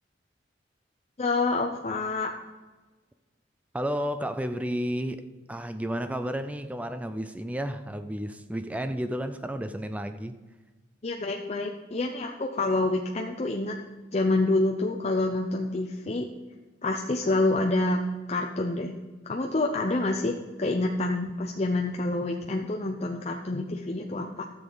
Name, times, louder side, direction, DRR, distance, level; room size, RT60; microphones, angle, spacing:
voice 1, 1.2-2.3 11.0-13.7 14.1-16.3 16.8-18.0 18.3-18.9 19.2-24.4, left 2 dB, 35° left, 0.6 m, -27 dB
voice 2, 3.7-10.4, equal, 10° right, 0.4 m, -32 dB
13.0 x 7.2 x 3.9 m
head